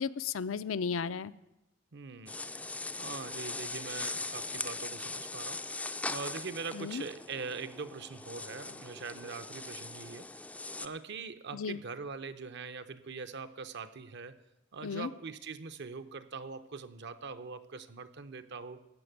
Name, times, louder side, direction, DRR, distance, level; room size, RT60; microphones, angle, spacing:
voice 1, 0.0-1.3 6.7-7.0 11.5-11.8 14.8-15.1, left 6 dB, 70° left, 14 dB, 0.5 m, -34 dB
voice 2, 1.9-2.4 3.0-5.8 6.1-10.4 10.8-14.4 14.7-18.8, right 4 dB, 55° right, 12 dB, 0.7 m, -42 dB
sound 1, 2.3-10.9, left 2 dB, 5° left, 0.4 m, -40 dB
14.5 x 5.9 x 9.2 m, 0.93 s
head